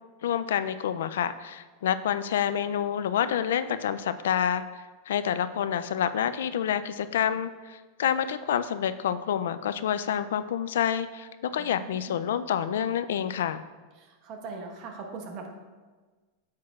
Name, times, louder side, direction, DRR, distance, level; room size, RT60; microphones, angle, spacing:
voice 1, 0.2-4.6 5.1-13.6, left 9 dB, 85° left, 12 dB, 0.4 m, -28 dB
voice 2, 11.5-12.2 14.0-15.5, right 4 dB, 45° right, 3 dB, 1.2 m, -41 dB
8.7 x 7.4 x 2.4 m, 1.3 s
supercardioid pair, 145°, 0 cm